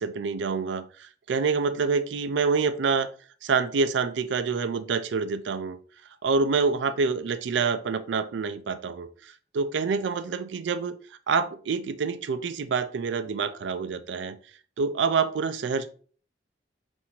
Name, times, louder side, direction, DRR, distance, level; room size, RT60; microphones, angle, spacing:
voice 1, 0.0-3.1 3.4-5.8 6.2-11.0 11.3-14.4 14.8-15.9, right 5 dB, 85° right, 12 dB, 0.4 m, -27 dB
5.8 x 2.6 x 2.7 m, 0.43 s
head